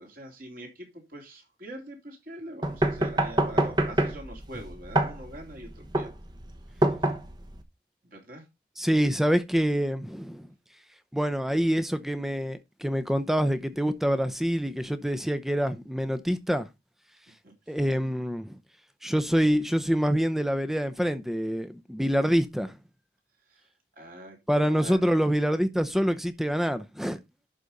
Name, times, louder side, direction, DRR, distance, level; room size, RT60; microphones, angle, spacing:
voice 1, 0.0-6.2 8.0-8.4 17.4-17.8 23.5-23.7 24.0-25.2, right 1 dB, 50° right, 3.1 m, -44 dB
sound 1, 2.6-7.6, right 1 dB, 25° right, 1.0 m, -26 dB
voice 2, 8.8-10.5 11.1-16.7 17.7-18.6 19.0-22.8 24.5-27.2, equal, ahead, 0.7 m, -26 dB
11.0 x 4.1 x 5.1 m
head